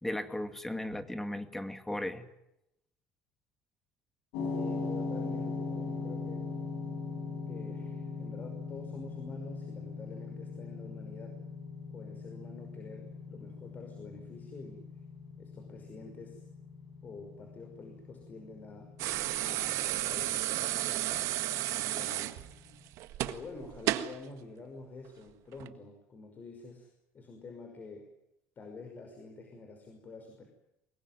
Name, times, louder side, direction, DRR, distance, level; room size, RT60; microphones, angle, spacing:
voice 1, 0.0-2.3, left 1 dB, 5° left, 9 dB, 2.2 m, -36 dB
sound 1, 4.3-22.6, left 4 dB, 85° left, 7.9 m, -40 dB
voice 2, 4.5-6.4 7.5-11.3 11.9-14.9 15.4-16.4 17.0-18.9 19.4-22.5 23.2-26.9 27.1-28.1 28.6-30.4, left 3 dB, 35° left, 4 dB, 5.6 m, -48 dB
sound 2, 19.0-24.2 25.5-25.7, right 15 dB, 70° right, 1.7 m, -32 dB
24.0 x 22.0 x 9.5 m, 0.85 s
cardioid pair, 135°, 5 cm